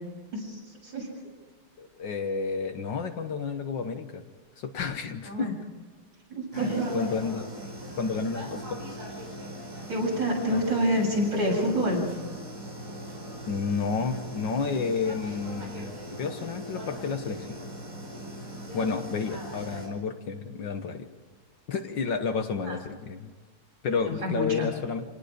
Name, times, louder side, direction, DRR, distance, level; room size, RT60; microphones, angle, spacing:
voice 1, 0.3-1.2 5.3-5.5 6.3-6.9 9.9-12.0 22.7-22.8 24.1-24.7, equal, 60° right, -2 dB, 8.6 m, -27 dB
voice 2, 1.8-4.2 4.6-5.5 6.9-7.5 8.0-8.8 10.5-10.6 13.5-17.6 18.7-21.1 21.7-23.3 23.8-25.0, left 5 dB, 60° left, 7 dB, 1.7 m, -31 dB
sound 1, 6.5-19.9, equal, 80° right, 6.2 m, -39 dB
28.5 x 18.5 x 5.1 m, 1.5 s
omnidirectional pair, 2.4 m